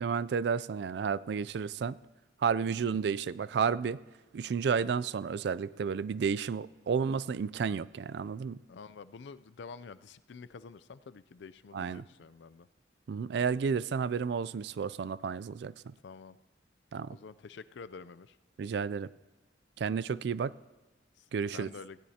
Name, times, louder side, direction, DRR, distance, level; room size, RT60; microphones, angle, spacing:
voice 1, 0.0-2.0 2.4-4.0 4.3-8.6 11.7-12.0 13.1-15.9 16.9-17.2 18.6-19.1 19.8-20.5 21.3-21.7, right 6 dB, 65° right, 0.3 m, -31 dB
voice 2, 8.7-12.7 16.0-16.4 17.1-18.4 21.2-21.3 21.5-22.0, left 5 dB, 75° left, 0.4 m, -48 dB
19.0 x 15.5 x 2.8 m
head